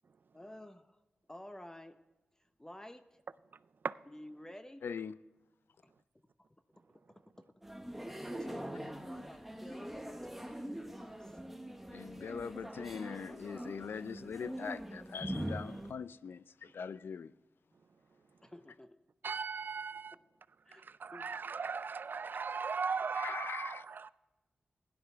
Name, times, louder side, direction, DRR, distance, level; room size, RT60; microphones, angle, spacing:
voice 1, 0.3-1.0 1.3-2.0 2.6-3.1 4.1-4.8 6.9-7.2 8.4-11.4 18.4-19.0 20.1-20.2 20.7-20.8 21.1-21.4, left 1 dB, 15° left, 0.7 m, -51 dB
voice 2, 4.8-5.1 11.9-17.3 23.2-23.8, left 6 dB, 80° left, 0.4 m, -42 dB
sound 1, 7.6-15.9, right 1 dB, 5° right, 1.1 m, -43 dB
voice 3, 19.2-20.2 20.7-24.1, right 5 dB, 60° right, 0.4 m, -38 dB
16.0 x 11.5 x 3.5 m
cardioid pair, 60°, 4 cm